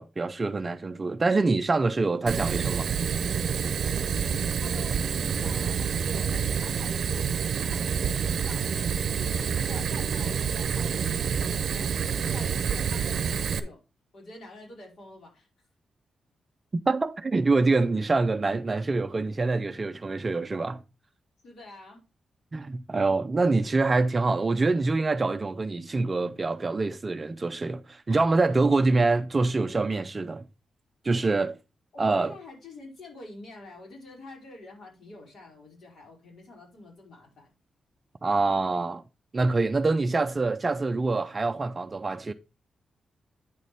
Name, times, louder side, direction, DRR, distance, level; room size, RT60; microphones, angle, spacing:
voice 1, 0.0-2.9 16.9-20.8 22.5-30.5 31.0-31.6 32.0-32.3 38.2-39.0 39.3-42.3, right 3 dB, 25° right, 0.5 m, -25 dB
Fire, 2.3-13.6, right 7 dB, 60° right, 0.7 m, -28 dB
voice 2, 4.2-9.0 9.2-13.8 14.1-15.5 21.4-22.0 31.9-37.5, left 2 dB, 55° left, 4.5 m, -47 dB
9.1 x 6.6 x 3.5 m
wide cardioid pair, 170°, 0 cm